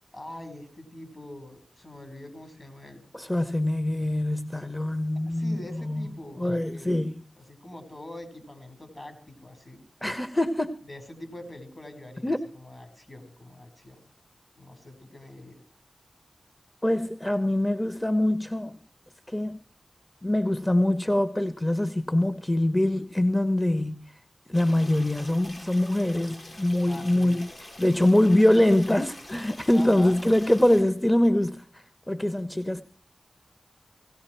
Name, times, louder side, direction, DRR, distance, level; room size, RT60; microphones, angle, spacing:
voice 1, 0.1-3.0 4.7-7.1 7.3-9.8 10.8-14.1 14.6-15.6 26.9-27.4 29.7-30.1, left 1 dB, 40° left, 4.6 m, -44 dB
voice 2, 3.1-6.1 6.4-7.1 10.0-10.7 12.2-12.4 16.8-18.8 19.3-19.6 20.2-24.1 24.5-27.5 27.8-32.8, left 1 dB, 20° left, 0.9 m, -24 dB
sound 1, 24.5-30.8, left 1 dB, 65° left, 7.7 m, -45 dB
18.5 x 16.5 x 4.5 m
cardioid pair, 50°, 0 cm